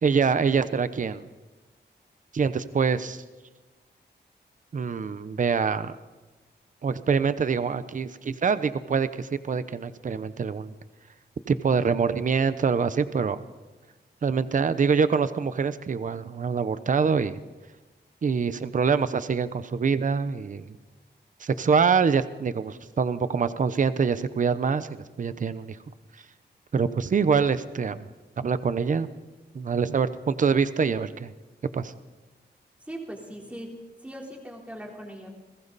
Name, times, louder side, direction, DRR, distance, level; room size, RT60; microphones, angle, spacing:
voice 1, 0.0-1.2 2.3-3.2 4.7-6.0 6.8-10.7 11.5-13.4 14.2-17.4 18.2-20.7 21.4-25.8 26.7-28.0 28.4-29.1 29.5-31.3 31.7-31.9, right 5 dB, 45° right, 13 dB, 0.8 m, -25 dB
voice 2, 32.9-33.7 34.0-35.3, right 1 dB, 5° right, 0 dB, 3.9 m, -39 dB
30.0 x 21.0 x 4.2 m, 1.2 s
wide cardioid pair, 175°, 18 cm